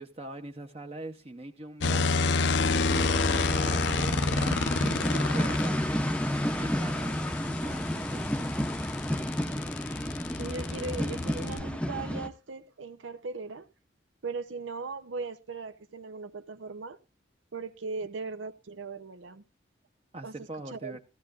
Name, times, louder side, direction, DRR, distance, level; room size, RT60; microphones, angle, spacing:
voice 1, 0.0-8.7 9.3-9.5 20.1-21.0, right 1 dB, 30° right, 0.7 m, -43 dB
sound 1, 1.8-5.7 8.0-11.6, left 4 dB, 70° left, 0.6 m, -28 dB
sound 2, 2.9-12.3, equal, 5° left, 0.6 m, -31 dB
voice 2, 6.8-7.2 10.4-13.7 14.2-17.0 17.5-19.4 20.2-20.3 20.7-21.0, right 4 dB, 90° right, 0.7 m, -38 dB
14.5 x 14.5 x 2.5 m
head